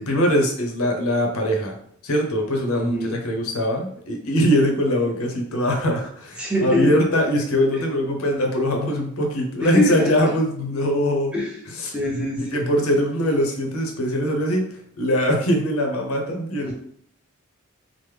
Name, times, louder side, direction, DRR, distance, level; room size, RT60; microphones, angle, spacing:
voice 1, 0.1-1.7 2.0-11.3 11.8-11.9 12.5-14.6 15.0-16.7, equal, 80° left, 2 dB, 0.7 m, -22 dB
voice 2, 2.7-3.2 6.4-6.9 9.6-10.3 11.3-11.5 11.9-12.7 16.6-16.7, left 1 dB, 5° right, -3 dB, 0.6 m, -24 dB
3.1 x 2.0 x 3.2 m, 0.64 s
head